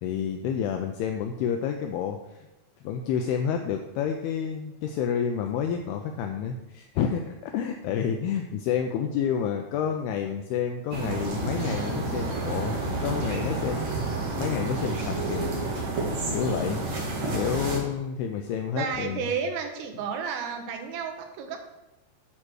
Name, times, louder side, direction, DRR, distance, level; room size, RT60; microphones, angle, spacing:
voice 1, 0.0-2.4 2.8-13.8 14.4-15.5 16.3-16.8 17.3-19.2, left 8 dB, 85° left, 5 dB, 2.2 m, -29 dB
sound 1, 10.9-17.8, right 2 dB, 50° right, 2.6 m, -30 dB
voice 2, 18.8-21.6, right 6 dB, 85° right, 5 dB, 3.4 m, -32 dB
10.0 x 4.7 x 6.3 m, 0.97 s
omnidirectional pair, 5.1 m